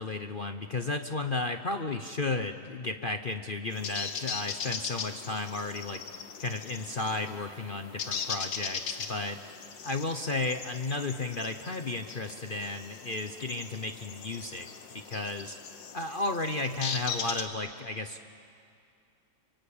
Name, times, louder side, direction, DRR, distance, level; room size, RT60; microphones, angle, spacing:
voice 1, 0.0-6.0 6.4-9.4 9.8-14.7 14.9-15.6 15.9-18.2, left 2 dB, 45° left, 7 dB, 0.7 m, -33 dB
sound 1, 3.7-17.5, left 6 dB, 80° left, 2.0 m, -39 dB
28.0 x 24.5 x 8.6 m, 2.5 s
omnidirectional pair, 2.0 m